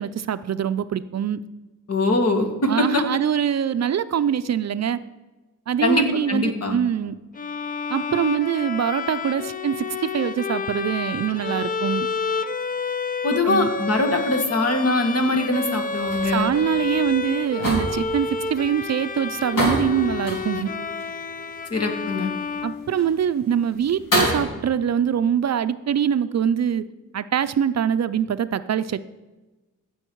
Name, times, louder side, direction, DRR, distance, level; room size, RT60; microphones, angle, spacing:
voice 1, 0.0-1.4 2.6-5.0 5.7-7.1 7.9-12.1 13.4-13.7 16.2-20.7 22.6-26.8 27.1-29.0, right 8 dB, 55° right, 13 dB, 0.5 m, -23 dB
voice 2, 1.9-2.8 5.8-6.8 13.2-16.5 21.7-22.3, left 2 dB, 50° left, 3 dB, 1.7 m, -22 dB
Bowed string instrument, 7.3-23.4, left 4 dB, 25° left, 0.5 m, -30 dB
sound 1, 15.7-24.5, equal, 90° left, 3.6 m, -30 dB
15.5 x 7.1 x 4.6 m, 1.2 s
wide cardioid pair, 100°, 32 cm